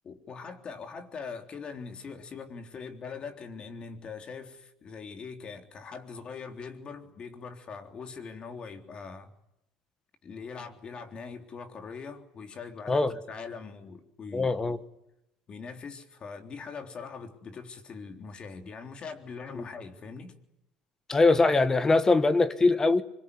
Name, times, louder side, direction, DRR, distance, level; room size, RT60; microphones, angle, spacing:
voice 1, 0.0-9.3 10.2-14.8 15.5-20.3, left 5 dB, 35° left, 3.6 m, -42 dB
voice 2, 14.3-14.8 21.1-23.0, left 3 dB, 20° left, 1.5 m, -22 dB
25.0 x 22.5 x 9.9 m
supercardioid pair, 115°, 3 cm